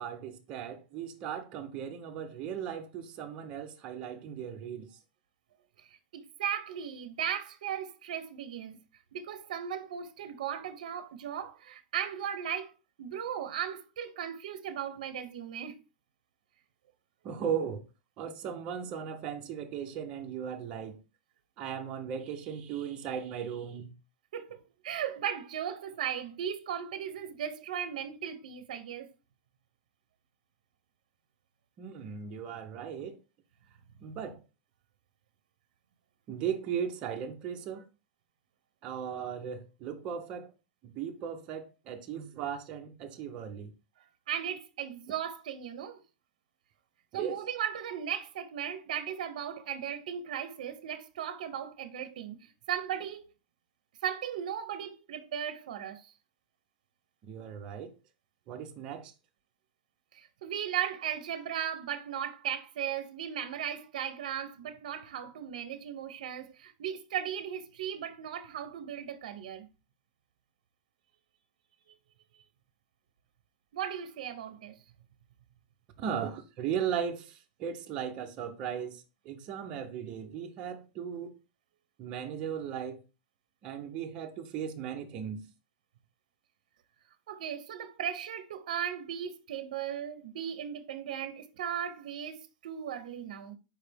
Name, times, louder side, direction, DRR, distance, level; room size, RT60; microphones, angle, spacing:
voice 1, 0.0-5.0 17.2-17.8 18.2-21.0 21.6-23.9 31.8-33.2 34.0-34.4 36.3-37.8 38.8-40.5 40.8-43.7 47.1-47.4 57.2-57.9 58.5-59.1 76.0-81.3 82.0-83.0 83.6-85.4, right 8 dB, 25° right, 0.5 m, -37 dB
voice 2, 6.1-8.8 9.1-12.7 13.0-15.8 24.3-29.1 44.3-46.0 47.1-53.2 54.0-56.1 60.1-69.7 73.7-74.8 87.3-93.6, right 9 dB, 65° right, 0.6 m, -37 dB
4.7 x 3.2 x 3.3 m
supercardioid pair, 180°, 4 cm